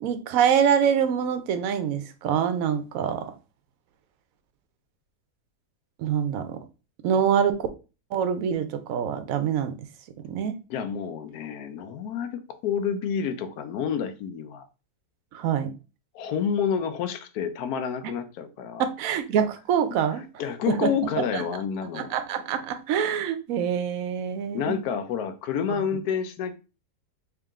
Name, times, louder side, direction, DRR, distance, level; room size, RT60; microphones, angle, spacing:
voice 1, 0.0-3.3 6.0-6.6 7.0-7.6 8.1-9.8 10.2-10.5 15.3-15.7 18.0-18.1 18.8-20.2 20.7-21.4 21.9-24.8, right 8 dB, 65° right, 0.9 m, -25 dB
voice 2, 10.7-14.7 16.1-18.8 20.4-22.1 24.5-26.5, left 7 dB, 70° left, 1.1 m, -29 dB
3.6 x 2.9 x 3.5 m
omnidirectional pair, 1.8 m